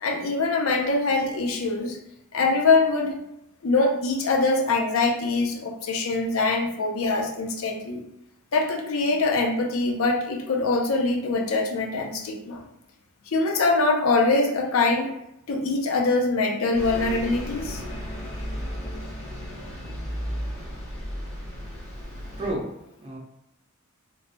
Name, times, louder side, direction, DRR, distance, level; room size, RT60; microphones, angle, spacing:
voice 1, 0.0-2.0 2.3-3.2 3.6-8.0 8.5-12.7 13.3-15.1 15.5-17.8, left 3 dB, 75° left, 2 dB, 0.6 m, -23 dB
Bus, 16.7-22.5, equal, 30° left, 1.0 m, -34 dB
voice 2, 21.9-23.2, right 1 dB, 30° right, -2 dB, 0.7 m, -34 dB
3.1 x 2.2 x 3.9 m, 0.83 s
head